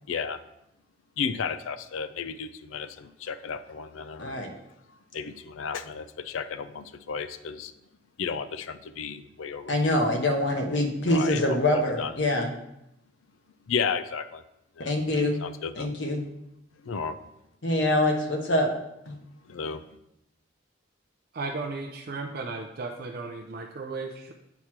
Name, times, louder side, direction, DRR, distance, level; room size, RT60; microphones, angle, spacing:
voice 1, 0.1-0.4 1.2-4.4 5.1-7.7 8.2-10.1 11.1-12.1 13.7-14.4 14.8-14.9 15.4-15.9 16.8-17.2 19.5-19.8, left 6 dB, 80° left, 11 dB, 0.4 m, -33 dB
voice 2, 4.2-4.5 9.7-12.5 14.8-15.4 15.8-16.3 17.6-18.7 19.1-19.2, left 1 dB, 60° left, 2 dB, 1.1 m, -25 dB
voice 3, 21.3-24.3, right 3 dB, 50° right, 2 dB, 0.5 m, -35 dB
8.1 x 3.1 x 5.8 m, 0.84 s
head